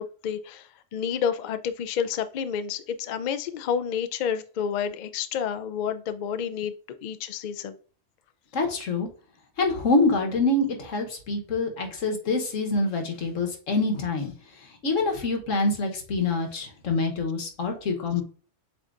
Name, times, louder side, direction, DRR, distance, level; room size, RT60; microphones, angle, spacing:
voice 1, 0.0-7.7, left 7 dB, 70° left, 0.4 m, -30 dB
voice 2, 8.5-9.1 9.6-14.3 14.8-18.2, left 3 dB, 85° left, 1.5 m, -25 dB
7.6 x 2.7 x 2.5 m
omnidirectional pair, 1.3 m